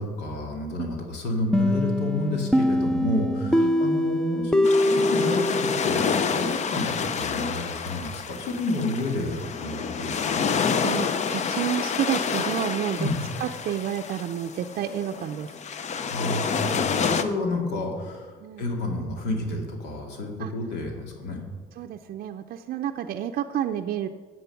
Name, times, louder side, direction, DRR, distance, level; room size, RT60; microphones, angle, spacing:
voice 1, 0.0-10.5 13.0-13.1 16.0-21.4, left 1 dB, 80° left, 1 dB, 2.4 m, -30 dB
sound 1, 1.5-6.2, left 1 dB, 5° left, 0.5 m, -23 dB
voice 2, 3.4-3.7 10.8-13.1 13.4-15.5 18.4-18.6 20.4-20.5 21.8-24.1, right 10 dB, 60° right, 5 dB, 0.5 m, -30 dB
sound 2, 4.6-17.2, left 6 dB, 40° left, 0.6 m, -28 dB
10.5 x 7.7 x 5.9 m, 1.5 s
cardioid pair, 110°, 17 cm